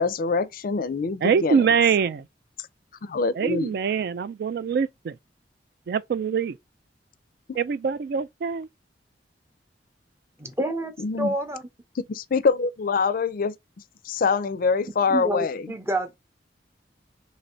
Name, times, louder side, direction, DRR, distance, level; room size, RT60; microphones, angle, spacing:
voice 1, 0.0-1.8 2.6-2.7 3.0-3.8 7.5-7.6 11.0-11.3 12.1-13.5 14.0-15.7, left 4 dB, 50° left, 0.4 m, -25 dB
voice 2, 1.2-2.2 3.4-5.1 5.9-6.5 7.6-8.7, right 6 dB, 60° right, 0.3 m, -24 dB
voice 3, 10.4-11.6 15.1-16.2, right 1 dB, 15° right, 0.6 m, -28 dB
3.0 x 2.7 x 4.2 m
head